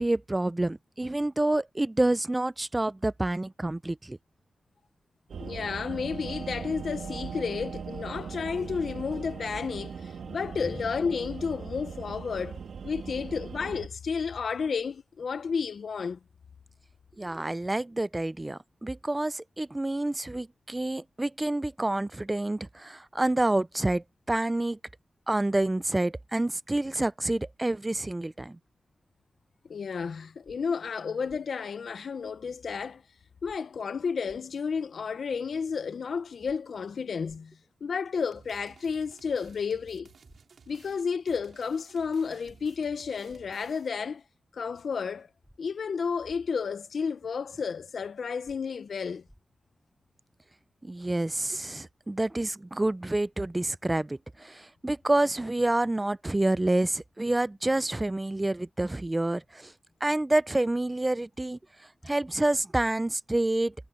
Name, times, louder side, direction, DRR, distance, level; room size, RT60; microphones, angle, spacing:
voice 1, 0.0-4.2 17.2-24.8 25.3-28.6 50.8-59.7 60.0-61.6 62.0-63.7, right 2 dB, 15° right, 0.4 m, -28 dB
sound 1, 5.3-13.9, right 6 dB, 85° right, 1.9 m, -39 dB
voice 2, 5.4-16.2 29.7-33.0 33.4-40.1 40.7-44.2 44.5-45.3 45.6-49.2, left 5 dB, 70° left, 0.5 m, -32 dB
sound 2, 30.4-30.6 31.3-31.4 33.4-33.6 34.3-34.4 36.4-36.6 37.3-37.4 39.4-39.6 40.3-40.4 42.4-42.6 43.3-43.4 45.4-45.6 46.3-46.4 48.4-48.6 49.3-49.4, equal, ahead, 4.5 m, -56 dB
sound 3, 38.3-44.1, right 5 dB, 70° right, 4.7 m, -56 dB
wide cardioid pair, 120°, 0 cm